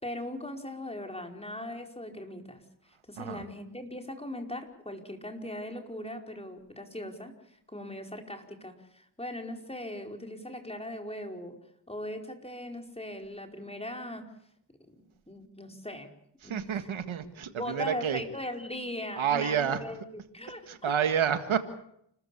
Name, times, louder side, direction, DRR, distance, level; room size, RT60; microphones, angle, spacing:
voice 1, 0.0-2.6 3.1-11.6 11.9-14.3 15.3-16.1 16.4-16.9 17.6-20.0 20.3-20.9, left 1 dB, 15° left, 4 dB, 4.8 m, -39 dB
voice 2, 16.4-18.2 19.2-19.8 20.7-21.6, right 8 dB, 90° right, 9 dB, 1.8 m, -29 dB
29.5 x 14.0 x 8.5 m, 0.74 s
cardioid pair, 50°, 46 cm